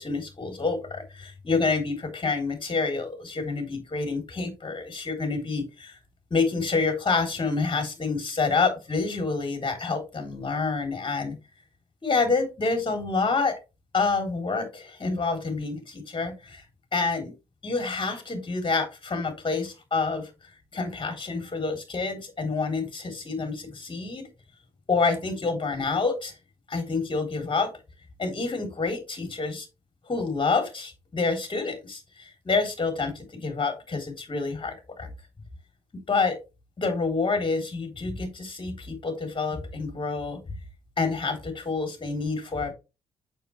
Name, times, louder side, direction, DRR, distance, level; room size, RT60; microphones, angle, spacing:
voice 1, 0.0-6.0 6.3-11.4 12.0-13.6 13.9-16.6 16.9-17.3 17.6-20.3 20.7-24.3 24.9-26.3 26.7-27.7 28.2-29.7 30.0-35.1 35.9-36.4 36.8-40.4 41.0-42.7, left 4 dB, 35° left, 5 dB, 3.5 m, -28 dB
6.8 x 6.7 x 3.2 m, 0.26 s
hypercardioid pair, 45°, 14 cm